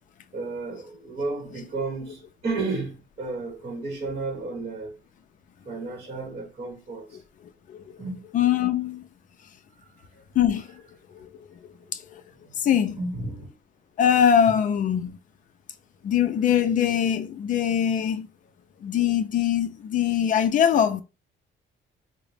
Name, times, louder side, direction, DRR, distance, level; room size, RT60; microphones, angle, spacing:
voice 1, 0.3-5.0 5.6-7.2 8.0-8.2 9.8-9.9 12.4-12.5 12.9-13.5, right 3 dB, 30° right, 1.1 m, -32 dB
voice 2, 7.7-8.0 8.3-9.0 10.4-10.7 11.2-11.3 11.6-12.2 12.6-13.0 14.0-15.2 16.0-18.3 18.8-21.0, left 9 dB, 40° left, 0.4 m, -22 dB
3.7 x 2.0 x 3.3 m
cardioid pair, 165°, 20 cm